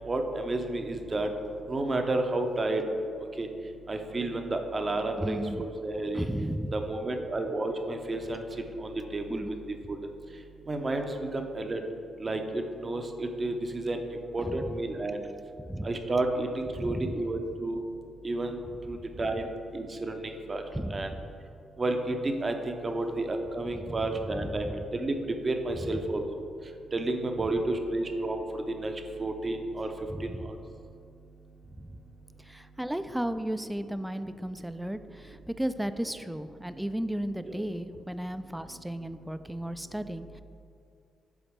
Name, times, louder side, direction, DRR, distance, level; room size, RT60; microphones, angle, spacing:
voice 1, 0.1-1.3 1.7-2.8 3.4-3.5 3.9-6.3 6.7-8.4 8.8-9.5 10.7-11.8 12.2-14.0 14.3-15.2 15.8-17.8 18.2-18.6 18.9-19.5 19.7-20.6 20.9-21.1 21.8-25.1 25.4-26.2 26.9-28.9 29.2-29.9 30.2-30.6 37.5-37.6, right 2 dB, 35° right, 5 dB, 0.7 m, -31 dB
voice 2, 5.2-5.7 6.1-6.8 9.3-9.6 14.4-14.7 15.6-15.9 16.8-17.3 20.7-21.3 23.7-24.0 24.3-24.8 25.9-26.1 30.1-30.4 31.7-32.0 32.4-40.4, right 1 dB, 5° right, 11 dB, 0.3 m, -35 dB
7.0 x 4.0 x 3.5 m, 2.5 s
supercardioid pair, 55°, 0 cm